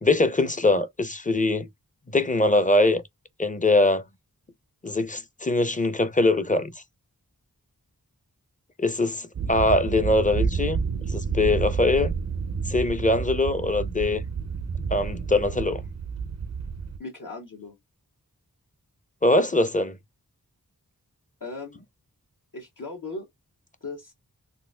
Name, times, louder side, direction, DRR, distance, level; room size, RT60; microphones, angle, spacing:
voice 1, 0.0-1.7 2.1-3.0 3.4-4.0 4.8-6.7 8.8-12.2 12.7-14.2 14.9-15.8 19.2-20.0, left 2 dB, 20° left, 0.6 m, -22 dB
sound 1, 9.3-17.0, right 5 dB, 45° right, 0.4 m, -30 dB
voice 2, 17.0-17.8 21.4-21.8 22.5-23.3 23.8-24.1, left 3 dB, 55° left, 1.0 m, -37 dB
3.9 x 2.5 x 2.2 m
wide cardioid pair, 40°, 37 cm